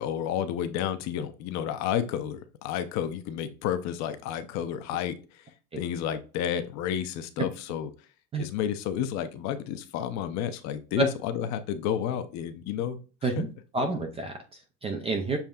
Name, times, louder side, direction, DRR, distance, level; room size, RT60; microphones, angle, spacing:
voice 1, 0.0-5.4 5.8-7.9 8.4-13.3, left 9 dB, 50° left, 10 dB, 0.6 m, -31 dB
voice 2, 13.7-15.4, right 3 dB, 15° right, 4 dB, 0.3 m, -29 dB
7.1 x 3.3 x 2.3 m, 0.35 s
cardioid pair, 175°, 37 cm